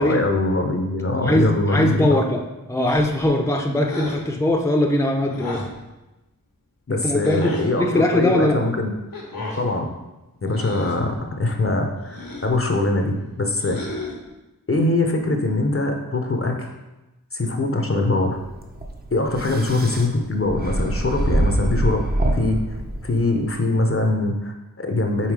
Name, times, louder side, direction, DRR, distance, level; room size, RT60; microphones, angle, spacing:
voice 1, 0.0-2.2 6.9-8.9 9.6-9.9 10.4-13.9 14.7-16.7 17.3-18.4 19.1-22.0 22.3-22.8 23.0-25.3, left 2 dB, 40° left, 4 dB, 0.8 m, -22 dB
voice 2, 1.2-2.4 2.7-5.7 6.9-8.6 17.4-17.6, left 1 dB, 10° left, 1 dB, 0.7 m, -21 dB
sound 1, 2.8-3.3 3.8-4.2 5.3-5.8 7.2-7.7 9.1-9.7 10.5-11.0 12.0-12.6 13.6-14.3, left 2 dB, 85° left, 1.4 m, -33 dB
sound 2, 18.4-23.5, right 1 dB, 25° right, 0.8 m, -25 dB
5.7 x 4.2 x 4.8 m, 1.0 s
wide cardioid pair, 60°, 35 cm